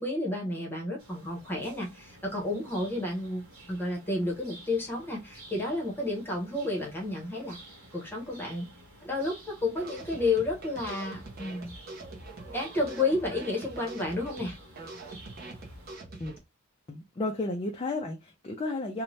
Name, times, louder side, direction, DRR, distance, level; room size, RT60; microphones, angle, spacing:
voice 1, 0.0-7.6 7.9-8.7 9.0-11.8 12.5-14.6, left 2 dB, 10° left, 0.8 m, -31 dB
sound 1, 1.0-16.0, right 1 dB, 65° right, 1.1 m, -52 dB
sound 2, 9.7-16.4, right 3 dB, 45° right, 0.6 m, -44 dB
voice 2, 16.9-19.0, left 2 dB, 25° left, 0.3 m, -33 dB
2.6 x 2.1 x 3.1 m
head